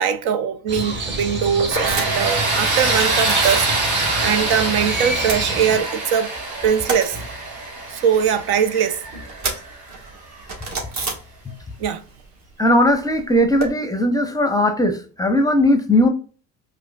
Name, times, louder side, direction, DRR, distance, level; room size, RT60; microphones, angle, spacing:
voice 1, 0.0-6.3 6.6-7.2 7.9-9.0 11.8-12.0, right 7 dB, 70° right, 0.6 m, -21 dB
Crow, 0.7-5.8, right 2 dB, 30° right, 1.0 m, -27 dB
sound 1, 1.6-2.4 2.6-3.7 4.1-4.8 5.1-6.1 6.4-11.8 12.1-13.7, right 3 dB, 45° right, 1.4 m, -31 dB
Tools, 1.7-10.5, right 2 dB, 85° right, 1.3 m, -25 dB
voice 2, 12.6-16.1, left 1 dB, 10° left, 0.6 m, -18 dB
4.4 x 2.6 x 2.3 m
supercardioid pair, 80°, 40 cm